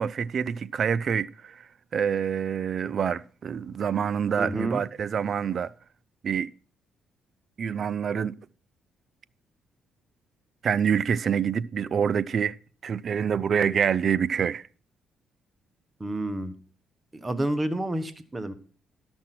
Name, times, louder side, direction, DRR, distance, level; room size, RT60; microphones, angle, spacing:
voice 1, 0.0-5.7 6.2-6.5 7.6-8.4 10.6-12.5 12.8-14.6, right 7 dB, 50° right, 0.4 m, -26 dB
voice 2, 4.4-4.8 16.0-16.5 17.2-18.5, right 1 dB, 20° right, 1.2 m, -29 dB
12.5 x 6.1 x 5.9 m
cardioid pair, 90°, 0 cm